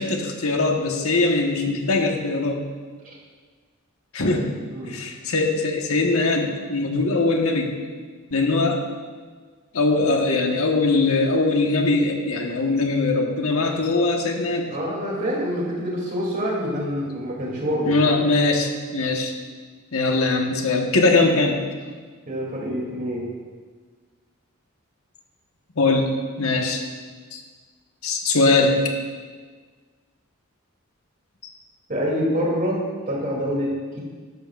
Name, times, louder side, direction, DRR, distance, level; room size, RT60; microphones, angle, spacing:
voice 1, 0.0-2.6 4.1-4.5 4.8-7.8 8.3-8.8 9.7-14.7 17.9-19.3 19.9-21.6 25.8-26.1 26.4-26.8 27.3-27.4 28.0-28.7, left 3 dB, 85° left, 2 dB, 1.3 m, -21 dB
voice 2, 14.7-18.2 22.3-23.3 31.9-33.7 33.9-34.0, equal, 40° right, -3 dB, 2.8 m, -26 dB
13.0 x 11.0 x 2.5 m, 1.5 s
head